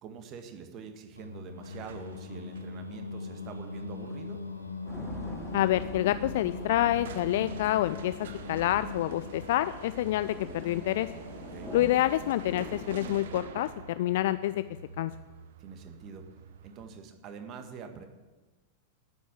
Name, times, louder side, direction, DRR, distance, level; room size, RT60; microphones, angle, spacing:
voice 1, 0.0-4.4 11.5-11.7 15.6-16.3 16.6-18.1, right 6 dB, 35° right, 6 dB, 1.7 m, -45 dB
Singing, 1.2-12.3, left 3 dB, 85° left, 1.2 m, -41 dB
sound 1, 1.6-17.0, right 6 dB, 60° right, 1.0 m, -48 dB
sound 2, 4.9-13.1, equal, 10° left, 2.9 m, -45 dB
voice 2, 5.5-11.1 11.7-13.7 14.0-14.6 15.0-15.1, left 14 dB, 55° left, 13 dB, 0.4 m, -27 dB
9.6 x 7.9 x 9.5 m, 1.2 s
figure-of-eight pair, 90°, 0 cm